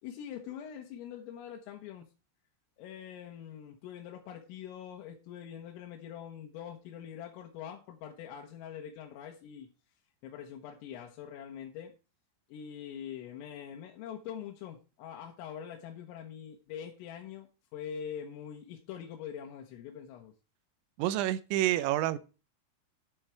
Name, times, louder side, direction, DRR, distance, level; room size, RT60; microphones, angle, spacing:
voice 1, 0.0-2.1 2.8-9.7 10.2-11.9 12.5-20.3, left 9 dB, 90° left, 1 dB, 3.9 m, -44 dB
voice 2, 21.0-22.2, right 14 dB, 80° right, 14 dB, 2.8 m, -28 dB
10.5 x 8.6 x 4.5 m, 0.32 s
omnidirectional pair, 5.8 m